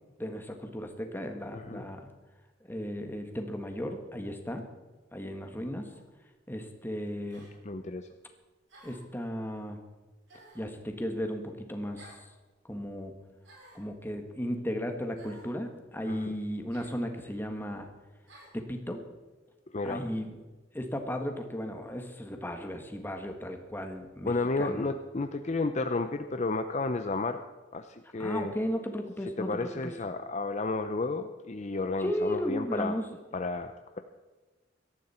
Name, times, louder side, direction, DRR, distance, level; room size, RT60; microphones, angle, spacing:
voice 1, 0.2-2.1 2.7-4.6 5.1-5.9 6.5-7.4 8.8-9.8 10.5-12.1 12.6-13.1 13.7-17.9 18.5-19.0 19.8-20.3 20.7-24.9 28.2-29.9 32.0-33.1, equal, 10° left, 5 dB, 1.7 m, -35 dB
voice 2, 1.5-1.9 7.6-8.1 16.1-16.3 19.7-20.0 24.2-27.4 27.7-28.5 29.4-33.0 33.3-34.0, left 3 dB, 40° left, 8 dB, 0.6 m, -32 dB
sound 1, 5.9-6.1 7.3-7.5 8.7-9.1 10.3-10.7 12.0-12.3 13.4-13.9 15.2-15.5 16.7-17.0 18.3-18.6, right 1 dB, 85° right, 6.6 m, -54 dB
18.0 x 13.5 x 4.4 m, 1.2 s
head